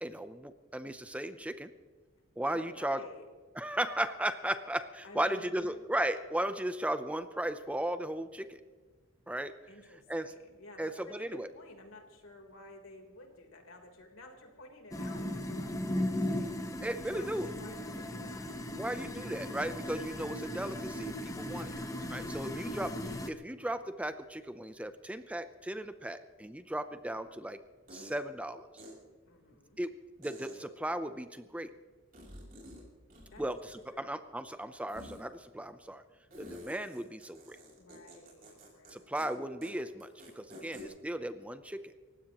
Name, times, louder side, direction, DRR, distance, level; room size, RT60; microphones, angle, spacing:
voice 1, 0.0-1.7 2.4-3.0 3.6-8.6 9.3-9.5 10.1-10.3 10.8-11.5 16.8-17.5 18.8-21.7 22.1-22.9 23.3-27.6 27.9-28.6 29.8-29.9 30.2-31.7 33.4-36.0 36.4-37.6 38.9-40.1 40.4-41.8, right 1 dB, 5° right, 10 dB, 0.6 m, -36 dB
voice 2, 2.5-3.3 5.0-5.8 9.7-18.6 22.4-22.9 29.3-29.8 33.3-33.4 33.9-34.5 37.8-39.0, left 1 dB, 80° left, 2 dB, 3.6 m, -53 dB
sound 1, 14.9-23.3, left 1 dB, 15° left, 1.0 m, -37 dB
sound 2, 27.9-28.1 28.8-28.9 30.2-30.5 32.1-32.8 33.1-34.0 34.9-35.2 36.3-38.9 39.2-39.3 39.6-39.7 40.0-40.8, equal, 45° right, 6.3 m, -49 dB
29.0 x 16.0 x 3.0 m, 1.4 s
head